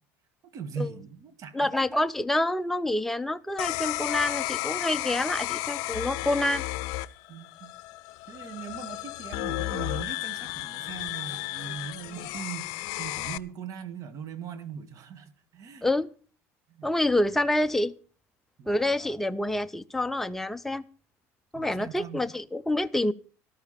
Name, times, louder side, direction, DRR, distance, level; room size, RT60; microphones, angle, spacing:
voice 1, 0.4-1.9 7.3-7.7 8.3-15.9 16.7-16.9 18.6-19.0 21.5-22.2, right 7 dB, 50° right, 1.9 m, -40 dB
voice 2, 1.5-6.6 15.8-16.1 16.8-17.9 18.7-20.8 21.5-23.1, left 1 dB, 5° left, 0.6 m, -27 dB
sound 1, 3.6-13.4, left 18 dB, 70° left, 0.6 m, -33 dB
13.5 x 13.0 x 4.3 m
supercardioid pair, 95°, 7 cm